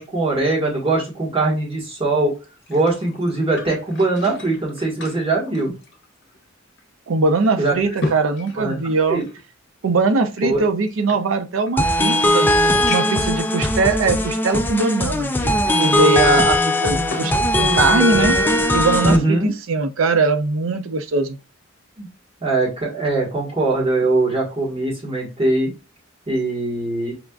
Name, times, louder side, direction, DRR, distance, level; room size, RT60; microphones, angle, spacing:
voice 1, 0.0-2.3 2.7-5.7 7.6-7.7 8.5-8.8 9.1-9.2 10.4-10.6 17.2-17.3 19.0-19.5 22.0-22.1 22.4-25.7 26.3-27.1, right 2 dB, 30° right, 1.3 m, -21 dB
sound 1, 2.4-6.4 6.8-6.9 7.5-9.4 10.3-11.8 12.3-12.4 12.9-13.3 14.0-14.1 16.4-17.4 17.7-18.6 19.0-19.2, left 2 dB, 55° left, 0.8 m, -35 dB
voice 2, 7.1-9.2 9.8-12.5 12.9-18.4 18.7-21.4, right 3 dB, 80° right, 0.5 m, -21 dB
sound 2, 11.8-19.2, left 1 dB, 10° left, 0.3 m, -19 dB
5.0 x 2.4 x 2.2 m
head